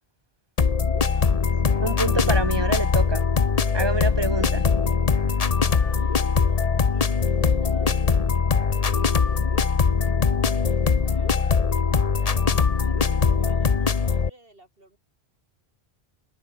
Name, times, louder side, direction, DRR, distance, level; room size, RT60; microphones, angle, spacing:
sound 1, 0.6-14.3, left 5 dB, 40° left, 0.9 m, -21 dB
voice 1, 1.1-1.7 5.5-8.3 8.8-9.7 11.0-15.0, right 1 dB, 60° right, 6.5 m, -52 dB
voice 2, 1.8-3.2 3.7-4.6, right 2 dB, 25° right, 1.5 m, -27 dB
omnidirectional pair, 1.1 m